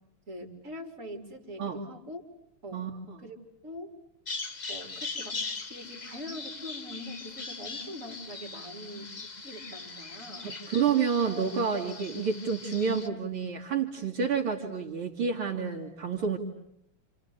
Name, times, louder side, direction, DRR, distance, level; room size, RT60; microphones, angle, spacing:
voice 1, 0.3-2.2 2.6-2.9 3.2-3.4 3.6-3.9 4.7-10.6, equal, 35° right, 2 dB, 5.1 m, -43 dB
voice 2, 2.7-3.2 10.4-16.4, right 6 dB, 70° right, -2 dB, 3.4 m, -29 dB
Bird vocalization bird call bird song, 4.3-13.1, left 4 dB, 25° left, 1.0 m, -40 dB
29.0 x 29.0 x 6.8 m, 0.76 s
omnidirectional pair, 2.4 m